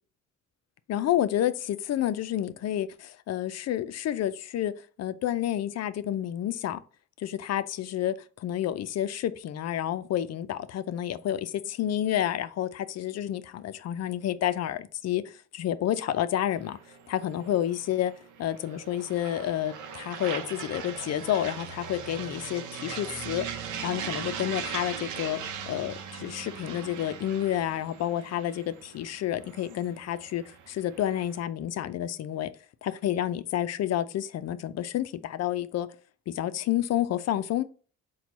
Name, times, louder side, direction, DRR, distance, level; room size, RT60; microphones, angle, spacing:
voice 1, 0.9-4.7 5.0-6.8 7.2-16.8 17.1-18.1 18.4-23.5 23.8-25.4 25.7-32.5 32.8-35.9 36.3-37.6, left 11 dB, 60° left, 0.5 m, -30 dB
sound 1, 16.6-31.4, right 7 dB, 80° right, 0.7 m, -40 dB
4.4 x 2.2 x 4.0 m
cardioid pair, 90°, 30 cm